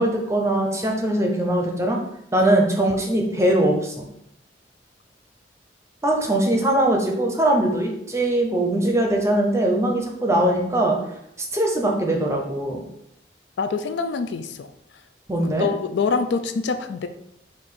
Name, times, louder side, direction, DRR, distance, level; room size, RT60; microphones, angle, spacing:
voice 1, 0.0-2.0 2.3-4.1 6.0-11.0 11.5-12.8 15.3-15.7, right 1 dB, 15° right, 1 dB, 0.6 m, -21 dB
voice 2, 13.6-14.7 15.6-17.1, left 5 dB, 75° left, 9 dB, 0.4 m, -25 dB
4.7 x 2.5 x 4.1 m, 0.78 s
head